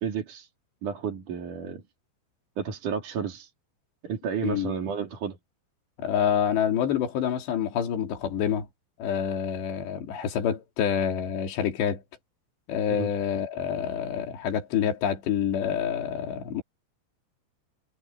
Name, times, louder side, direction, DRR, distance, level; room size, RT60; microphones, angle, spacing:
voice 1, 0.0-0.5 0.8-1.8 2.6-3.5 4.0-5.4 12.9-13.1, right 7 dB, 50° right, 4.0 m, -31 dB
voice 2, 6.0-8.7 9.0-12.0 12.7-16.6, left 8 dB, 70° left, 5.2 m, -27 dB
omnidirectional pair, 5.3 m